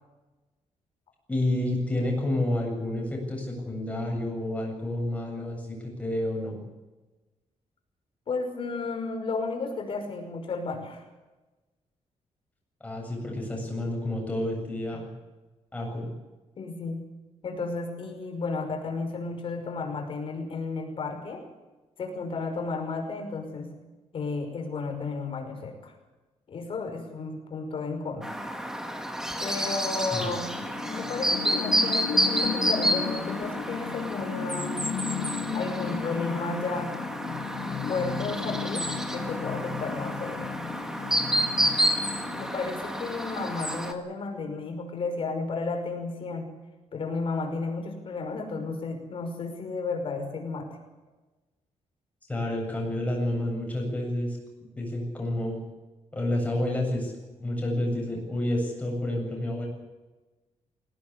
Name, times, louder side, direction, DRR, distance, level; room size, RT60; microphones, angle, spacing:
voice 1, 1.3-6.6 12.8-15.1 15.7-16.1 30.1-30.3 52.3-54.4 54.8-55.6 56.1-57.1 57.4-59.7, left 1 dB, 10° left, 0 dB, 7.9 m, -29 dB
voice 2, 8.3-11.0 16.0-16.1 16.6-17.0 17.4-21.4 22.0-23.7 24.1-25.9 26.5-28.4 29.4-30.5 30.9-34.8 35.5-37.0 37.9-40.5 42.3-46.5 46.9-50.7, left 3 dB, 50° left, 4 dB, 5.6 m, -33 dB
Chirp tweet, 28.2-43.9, equal, 5° right, 2.0 m, -30 dB
sound 1, 30.6-42.6, left 6 dB, 70° left, 3.0 m, -35 dB
22.5 x 18.0 x 8.3 m, 1.2 s
wide cardioid pair, 170°, 12 cm